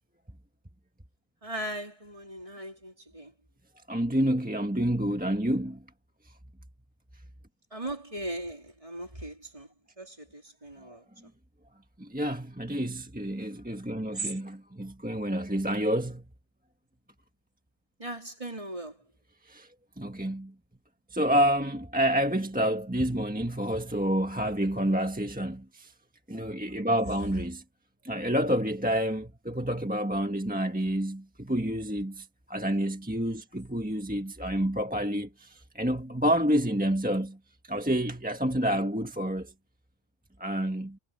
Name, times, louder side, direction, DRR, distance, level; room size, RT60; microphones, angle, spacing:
voice 1, 1.4-3.3 7.7-11.0 14.1-14.4 18.0-19.0, right 1 dB, 30° right, 3.9 m, -38 dB
voice 2, 3.9-5.8 6.2-6.3 10.8-11.0 12.0-16.3 19.4-19.7 20.0-20.5 21.1-25.9 26.3-27.6 28.0-37.4 37.6-39.5 40.4-41.0, equal, 10° right, 1.4 m, -28 dB
omnidirectional pair, 1.1 m